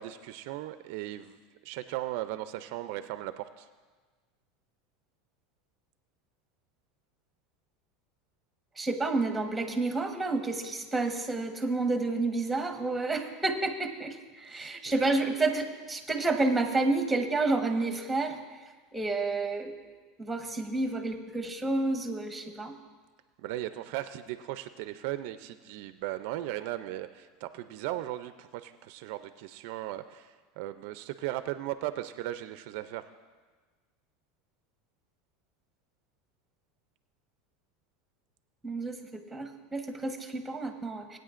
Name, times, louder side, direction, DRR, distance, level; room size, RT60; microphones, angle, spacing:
voice 1, 0.0-1.4 1.6-3.7 14.5-15.1 23.4-33.1, right 14 dB, 70° right, 11 dB, 0.4 m, -37 dB
voice 2, 8.8-18.4 18.9-19.8 20.2-22.7 38.6-41.2, right 3 dB, 5° right, 5 dB, 1.2 m, -30 dB
19.5 x 9.1 x 2.5 m, 1.4 s
supercardioid pair, 120°, 0 cm